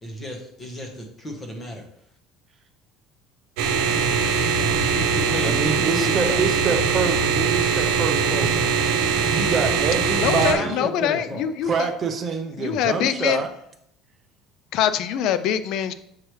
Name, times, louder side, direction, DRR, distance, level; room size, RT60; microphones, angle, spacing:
voice 1, 0.0-1.9 4.8-6.5 9.2-9.6 10.1-10.2 10.5-11.5, equal, 15° left, 2 dB, 1.0 m, -33 dB
sound 1, 3.6-10.5, right 5 dB, 75° right, 0.9 m, -22 dB
voice 2, 5.4-8.7 9.3-10.9 11.6-13.5, right 5 dB, 25° right, 5 dB, 0.6 m, -26 dB
voice 3, 10.2-11.9 12.6-13.4 14.7-15.9, left 9 dB, 50° left, 12 dB, 0.4 m, -24 dB
6.4 x 4.7 x 3.1 m, 0.71 s
cardioid pair, 175°, 0 cm